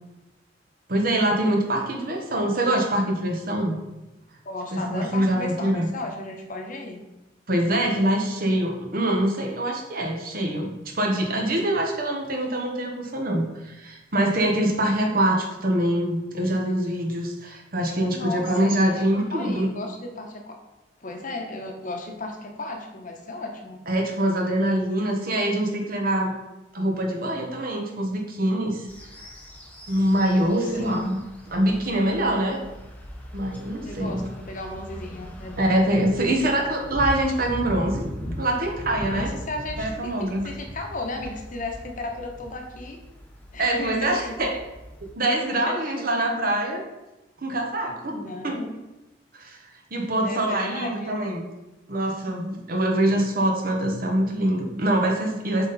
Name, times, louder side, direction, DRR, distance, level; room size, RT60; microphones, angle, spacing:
voice 1, 0.9-3.8 4.7-5.9 7.5-19.7 23.9-26.4 26.7-28.9 29.9-31.2 31.5-32.6 33.3-34.3 35.6-38.1 38.4-39.3 39.8-40.4 43.6-44.6 45.2-46.8 47.4-48.2 48.4-48.6 49.3-49.6 49.9-51.5 51.9-55.7, right 1 dB, 50° right, 2 dB, 1.1 m, -24 dB
voice 2, 4.4-7.0 18.1-20.6 21.0-23.8 30.7-31.0 33.8-35.9 39.1-39.9 40.2-43.0 43.5-44.4 45.5-46.0 48.1-48.7 50.2-51.2, left 2 dB, 45° left, 3 dB, 1.0 m, -35 dB
sound 1, 28.9-45.1, equal, 10° left, 0.8 m, -39 dB
7.0 x 4.2 x 4.1 m, 1.0 s
head